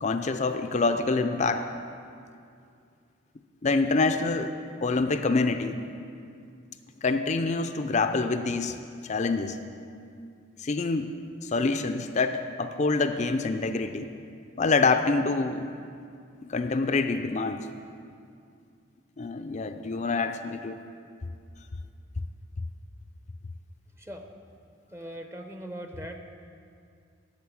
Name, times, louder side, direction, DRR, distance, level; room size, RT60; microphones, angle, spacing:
voice 1, 0.0-1.7 3.6-4.5 4.8-5.8 7.0-8.8 9.0-9.6 10.6-11.1 11.4-14.1 14.6-15.7 16.4-17.7 19.2-20.8, left 3 dB, 35° left, 7 dB, 0.5 m, -26 dB
voice 2, 24.9-26.2, right 1 dB, 15° right, 5 dB, 0.7 m, -39 dB
12.5 x 6.6 x 8.5 m, 2.4 s
head